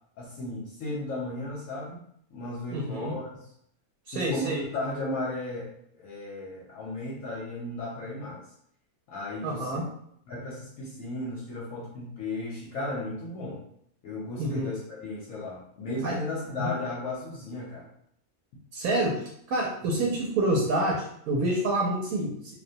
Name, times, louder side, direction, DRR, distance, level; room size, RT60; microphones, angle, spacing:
voice 1, 0.2-2.0 2.3-3.4 4.1-8.4 9.1-9.7 10.3-13.6 14.0-17.9, left 2 dB, 70° left, -4 dB, 0.9 m, -35 dB
voice 2, 2.7-3.1 4.1-4.7 9.4-9.9 14.4-14.7 16.0-16.1 16.6-16.7 18.7-22.3, right 1 dB, 90° right, -3 dB, 1.1 m, -27 dB
2.5 x 2.1 x 2.6 m, 0.69 s
omnidirectional pair, 1.5 m